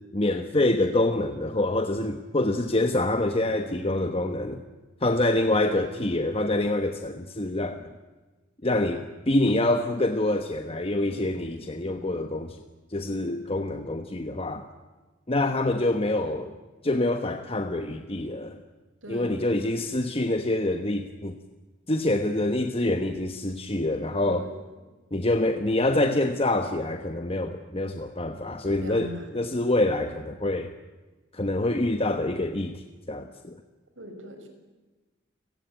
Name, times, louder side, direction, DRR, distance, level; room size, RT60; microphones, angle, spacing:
voice 1, 0.1-4.6 5.0-7.8 8.6-12.6 12.9-14.7 15.3-16.5 16.8-18.6 19.1-21.4 21.9-24.4 25.1-30.7 31.3-32.8 33.1-33.6, left 1 dB, 30° left, 7 dB, 1.2 m, -26 dB
voice 2, 19.0-19.6 24.3-24.5 28.6-29.3 34.0-34.5, equal, 85° right, 6 dB, 6.0 m, -40 dB
30.0 x 18.5 x 9.3 m, 1.3 s
head